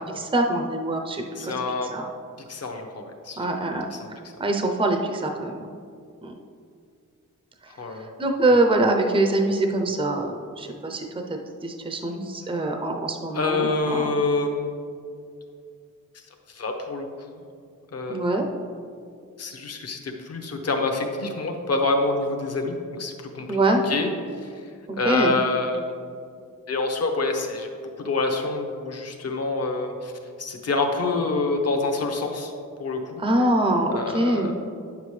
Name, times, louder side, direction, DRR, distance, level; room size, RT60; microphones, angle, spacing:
voice 1, 0.1-1.5 1.9-2.1 3.4-5.7 6.2-6.3 7.8-14.2 18.1-18.5 23.5-23.8 24.9-25.4 33.2-34.5, right 2 dB, 15° right, 3 dB, 0.6 m, -24 dB
voice 2, 1.4-1.9 2.5-3.4 3.9-4.1 7.8-8.1 8.5-8.6 13.3-14.7 16.5-17.4 17.9-18.2 19.4-20.0 20.2-23.6 23.9-24.1 25.0-25.8 26.7-27.7 28.0-30.1 30.4-32.5 32.8-33.2 33.9-34.5, left 3 dB, 50° left, 3 dB, 0.9 m, -26 dB
9.6 x 7.0 x 3.2 m, 2.3 s
wide cardioid pair, 125°, 32 cm